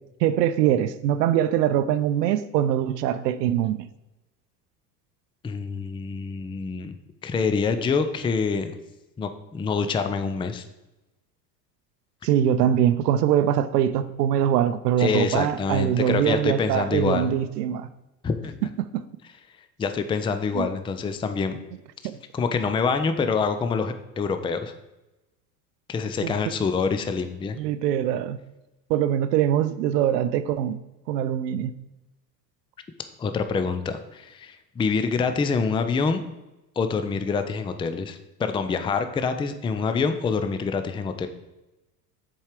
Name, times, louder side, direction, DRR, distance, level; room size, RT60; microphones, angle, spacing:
voice 1, 0.2-3.9 12.2-17.9 18.9-19.0 20.5-20.7 22.0-22.2 26.2-26.3 27.6-28.4 28.9-30.8 31.1-31.7, right 10 dB, 70° right, 12 dB, 0.6 m, -23 dB
voice 2, 5.4-7.0 7.2-8.8 9.2-10.6 15.0-17.3 18.2-18.7 19.2-19.3 19.8-21.6 22.3-24.7 25.9-27.6 33.2-36.2 36.8-41.3, left 5 dB, 10° left, 9 dB, 0.5 m, -26 dB
7.2 x 4.6 x 4.9 m, 1.0 s
hypercardioid pair, 75°, 50 cm